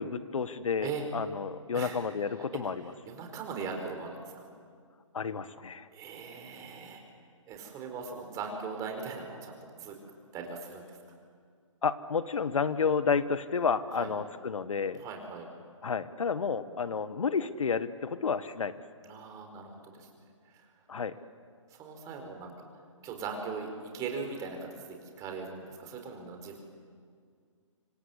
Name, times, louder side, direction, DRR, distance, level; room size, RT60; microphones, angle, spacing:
voice 1, 0.0-2.9 5.1-5.9 11.8-15.0 15.8-18.7 20.9-21.1, left 5 dB, 75° left, 13 dB, 1.3 m, -31 dB
voice 2, 3.0-4.3 5.9-7.0 7.5-10.0 10.3-10.8 13.9-14.1 15.0-15.5 19.0-20.1 20.5-20.7 21.7-22.5 23.0-26.6, right 5 dB, 20° right, 3 dB, 4.6 m, -40 dB
26.5 x 25.5 x 8.2 m, 2.1 s
hypercardioid pair, 150°, 17 cm